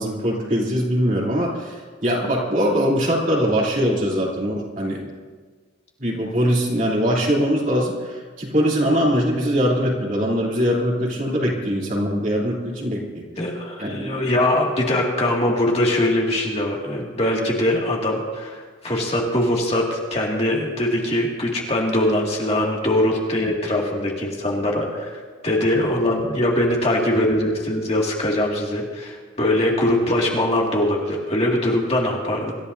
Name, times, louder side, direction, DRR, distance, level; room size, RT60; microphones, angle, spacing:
voice 1, 0.0-5.1 6.0-13.2 13.8-14.3, equal, 40° right, -3 dB, 3.1 m, -22 dB
voice 2, 13.4-32.6, left 1 dB, 30° left, -2 dB, 2.2 m, -22 dB
26.0 x 14.0 x 2.7 m, 1.5 s
head